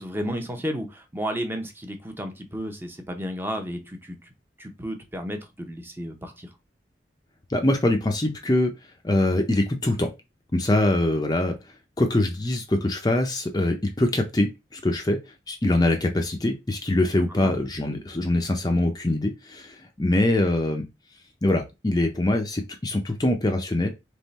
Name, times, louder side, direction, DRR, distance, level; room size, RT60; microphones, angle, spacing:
voice 1, 0.0-4.2 4.6-6.5 17.3-17.6, equal, 10° right, 0.8 m, -32 dB
voice 2, 7.5-8.7 9.0-10.1 10.5-11.6 12.0-15.2 15.5-20.8 21.4-23.9, left 1 dB, 20° left, 0.6 m, -23 dB
3.7 x 3.3 x 4.1 m
head